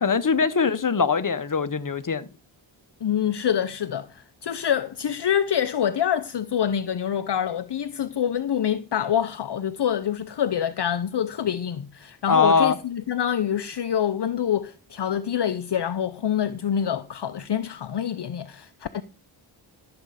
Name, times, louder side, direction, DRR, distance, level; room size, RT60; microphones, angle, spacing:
voice 1, 0.0-2.3 12.3-12.8, left 5 dB, 40° left, 1.2 m, -21 dB
voice 2, 3.0-19.0, left 9 dB, 55° left, 0.8 m, -26 dB
13.5 x 7.9 x 5.0 m
wide cardioid pair, 70°, 48 cm